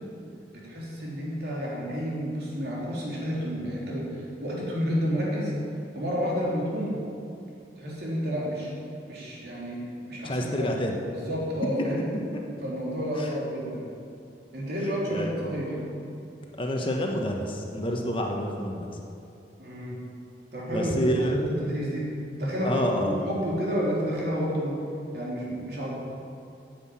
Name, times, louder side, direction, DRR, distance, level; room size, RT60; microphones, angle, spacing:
voice 1, 0.5-5.5 5.9-7.0 7.8-8.7 9.1-10.7 11.1-12.1 12.6-13.9 14.5-15.8 19.6-20.0 20.5-22.1 22.4-24.7 25.1-26.0, equal, 60° right, -5 dB, 3.5 m, -30 dB
voice 2, 10.2-11.0 12.3-12.4 13.2-13.3 15.1-15.3 16.6-18.9 20.7-21.4 22.6-23.2, equal, 30° left, 1 dB, 1.2 m, -28 dB
9.9 x 8.0 x 8.8 m, 2.6 s
head